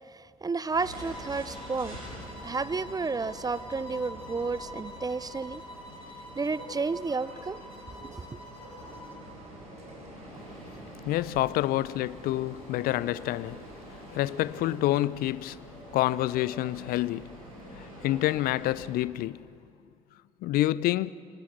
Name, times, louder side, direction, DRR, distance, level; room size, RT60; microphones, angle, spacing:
voice 1, 0.1-2.0 2.4-5.6 6.4-7.6 8.0-8.4, right 4 dB, 20° right, 0.7 m, -31 dB
sound 1, 0.7-18.9, equal, 85° right, 7.8 m, -46 dB
sound 2, 0.9-9.3, left 1 dB, 30° left, 4.3 m, -46 dB
Engine, 8.8-14.8, right 1 dB, 40° right, 7.4 m, -50 dB
voice 2, 11.0-13.6 14.1-15.6 15.9-17.4 17.7-19.5 20.4-21.1, left 15 dB, 55° left, 0.6 m, -28 dB
26.0 x 19.5 x 7.5 m
figure-of-eight pair, 50°, 18 cm